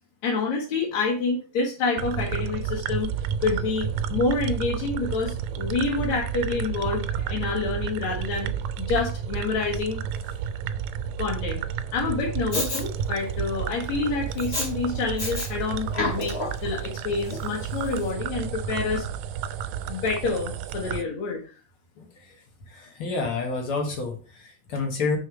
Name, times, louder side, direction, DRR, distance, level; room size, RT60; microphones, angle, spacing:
voice 1, 0.2-3.1 3.4-8.5 8.8-10.0 11.2-11.6 11.9-16.3 16.6-19.0 19.9-21.4, left 4 dB, 75° left, -4 dB, 2.7 m, -27 dB
sound 1, 2.0-21.0, right 8 dB, 80° right, 2.0 m, -31 dB
Respiratory sounds, 12.5-12.8 14.4-14.7 15.2-15.5 15.9-16.7 17.3-17.4, left 2 dB, 25° left, 2.3 m, -29 dB
voice 2, 22.7-25.2, left 4 dB, 55° left, 3 dB, 2.1 m, -29 dB
6.3 x 5.7 x 4.9 m, 0.37 s
omnidirectional pair, 3.3 m